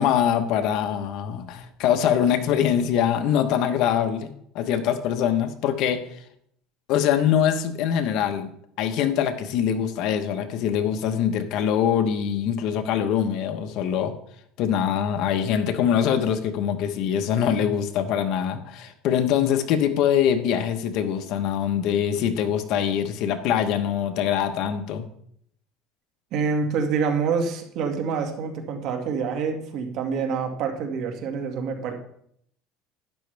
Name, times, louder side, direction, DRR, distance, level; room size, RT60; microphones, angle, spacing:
voice 1, 0.0-6.0 6.9-8.5 8.8-14.1 14.6-25.1, left 9 dB, 60° left, 7 dB, 1.2 m, -23 dB
voice 2, 26.3-31.9, right 5 dB, 55° right, 4 dB, 2.1 m, -26 dB
12.0 x 10.5 x 3.5 m, 0.69 s
cardioid pair, 135°, 0 cm